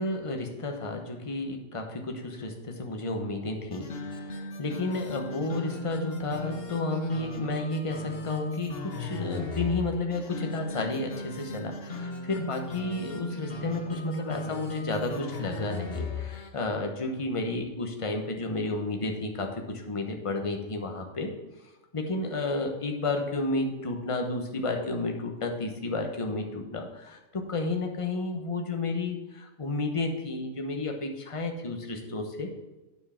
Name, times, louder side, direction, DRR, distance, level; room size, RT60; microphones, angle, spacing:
voice 1, 0.0-3.9 4.3-21.3 21.9-32.5, left 2 dB, 25° left, 3 dB, 1.1 m, -32 dB
sound 1, 3.7-16.5, left 1 dB, 50° left, 1.1 m, -37 dB
9.4 x 4.8 x 5.7 m, 1.1 s
omnidirectional pair, 1.3 m